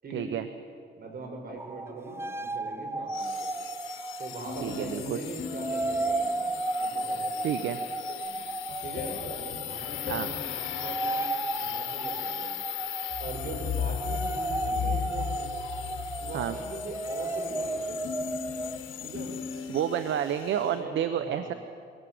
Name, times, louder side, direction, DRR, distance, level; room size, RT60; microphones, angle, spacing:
voice 1, 0.1-0.5 4.6-5.2 7.4-7.8 10.1-10.3 16.3-16.6 19.7-21.5, right 9 dB, 70° right, 10 dB, 1.0 m, -29 dB
voice 2, 0.9-3.5 4.2-6.2 6.9-7.4 8.8-12.5 13.2-15.3 16.2-18.0 19.0-19.3 20.7-21.5, right 2 dB, 50° right, 2 dB, 6.1 m, -41 dB
sound 1, 1.6-5.0 5.5-18.8, right 2 dB, 10° right, 0.7 m, -34 dB
sound 2, 3.1-20.8, left 12 dB, 85° left, 1.7 m, -40 dB
sound 3, 4.4-7.1 8.7-11.7 13.1-20.4, left 7 dB, 70° left, 3.2 m, -38 dB
23.0 x 17.5 x 7.9 m, 2.3 s
cardioid pair, 90°, 20 cm